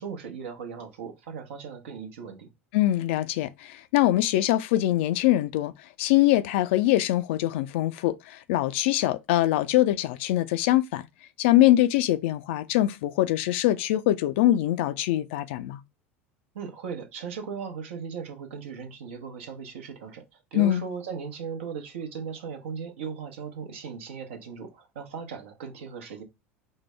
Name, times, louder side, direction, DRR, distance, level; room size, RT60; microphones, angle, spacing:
voice 1, 0.0-2.5 16.5-26.2, right 6 dB, 70° right, 0.9 m, -37 dB
voice 2, 2.7-5.7 6.0-11.1 11.4-15.8 20.5-20.8, left 14 dB, 60° left, 0.4 m, -23 dB
4.4 x 2.2 x 3.3 m
figure-of-eight pair, 75°, 7 cm